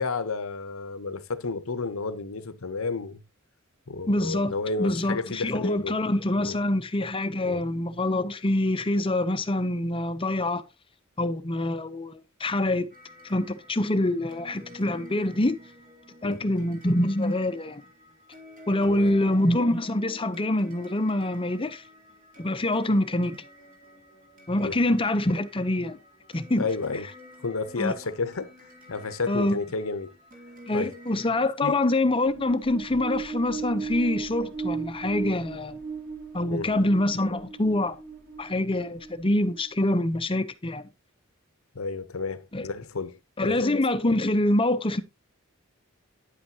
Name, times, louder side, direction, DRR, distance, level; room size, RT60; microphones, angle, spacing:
voice 1, 0.0-3.2 3.9-6.0 6.4-6.6 7.4-7.6 16.2-16.4 18.8-19.2 24.6-24.8 26.6-27.1 27.4-28.5 28.9-30.1 30.7-30.9 31.6-31.8 36.5-36.7 41.7-43.6, left 4 dB, 80° left, 0.9 m, -31 dB
voice 2, 4.1-10.6 11.2-12.9 13.2-15.6 16.2-17.8 18.7-21.8 22.4-23.4 24.5-26.0 26.3-26.7 27.8-27.9 29.3-29.6 30.7-35.8 36.3-38.0 38.4-40.8 42.5-42.6 43.4-45.0, left 1 dB, 25° left, 0.7 m, -25 dB
fantasy tune, 12.9-31.3, left 1 dB, 40° right, 2.9 m, -50 dB
sound 1, 32.2-39.8, right 5 dB, 90° right, 3.7 m, -36 dB
10.0 x 8.3 x 2.8 m
head